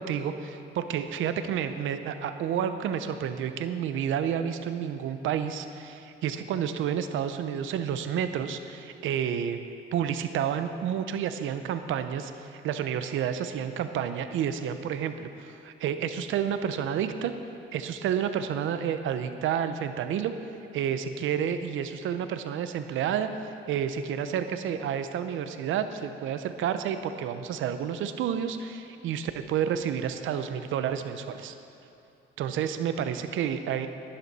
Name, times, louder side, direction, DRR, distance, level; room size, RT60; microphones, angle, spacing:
voice 1, 0.0-9.6 9.9-17.3 17.7-20.3 20.7-23.3 23.7-31.6 32.4-33.9, right 8 dB, 80° right, 9 dB, 0.7 m, -30 dB
11.0 x 11.0 x 4.2 m, 2.8 s
cardioid pair, 90°, 20 cm